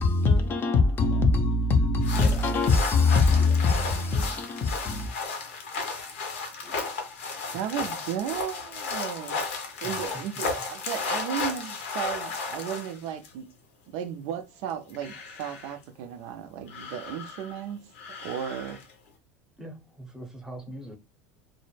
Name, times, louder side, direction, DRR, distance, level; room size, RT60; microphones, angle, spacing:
voice 1, 0.0-5.1, left 3 dB, 35° left, 0.5 m, -22 dB
voice 2, 0.6-1.3 2.2-2.5 3.4-4.2 6.6-7.0 9.8-10.2 19.6-21.0, right 1 dB, 10° right, 0.7 m, -44 dB
sound 1, 2.0-13.3 14.7-15.8 16.7-17.6 18.0-18.9, left 4 dB, 80° left, 0.7 m, -34 dB
voice 3, 7.5-9.4 9.8-13.5 13.9-17.8 18.2-18.8, right 9 dB, 65° right, 0.4 m, -34 dB
2.1 x 2.0 x 3.1 m
supercardioid pair, 105°, 6 cm